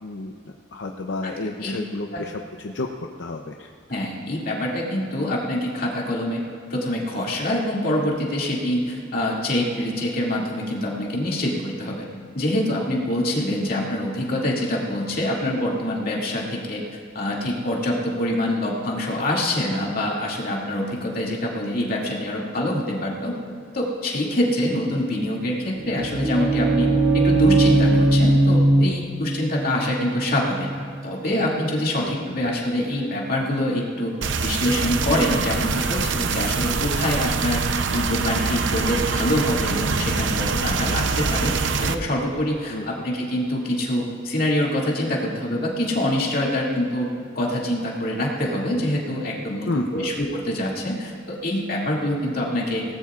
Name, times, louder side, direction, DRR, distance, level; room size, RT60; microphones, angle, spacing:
voice 1, 0.0-0.3 0.7-2.9 3.2-3.7 31.9-32.4 42.7-43.1 49.7-50.1, left 2 dB, 75° left, 2 dB, 0.7 m, -31 dB
voice 2, 3.9-6.4 6.7-12.0 12.3-16.8 17.1-23.3 23.7-26.9 27.1-30.7 31.0-34.1 34.4-41.5 41.8-47.1 47.3-52.8, left 1 dB, 55° left, -3 dB, 2.4 m, -25 dB
sound 1, 25.7-31.6, right 2 dB, 30° right, 2.5 m, -20 dB
sound 2, 34.2-41.9, right 4 dB, 90° right, 0.7 m, -24 dB
21.5 x 18.0 x 2.5 m, 2.3 s
head